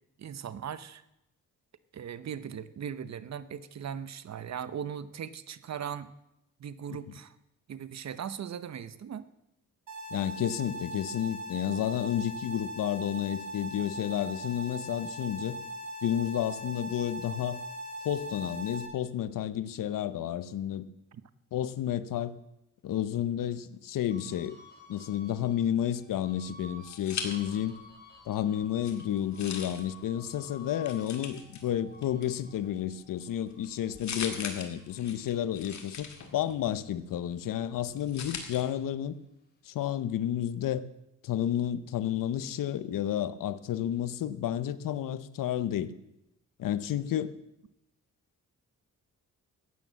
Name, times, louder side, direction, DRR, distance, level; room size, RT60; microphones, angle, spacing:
voice 1, 0.2-1.0 1.9-6.1 6.6-7.4 7.7-9.3 21.1-21.2, right 8 dB, 55° right, 0.9 m, -39 dB
sound 1, 9.9-18.9, equal, 70° right, 2.5 m, -40 dB
voice 2, 10.1-15.6 16.0-17.6 18.0-20.9 21.5-22.4 22.8-24.6 24.9-27.8 28.3-39.2 39.6-40.8 41.2-45.9 46.6-47.4, left 10 dB, 80° left, 0.8 m, -31 dB
sound 2, 24.1-36.7 37.1-38.8, left 2 dB, 30° left, 3.3 m, -54 dB
sound 3, 26.4-27.9 28.2-38.6, left 6 dB, 60° left, 2.0 m, -43 dB
14.0 x 9.4 x 7.5 m
cardioid pair, 90°, 32 cm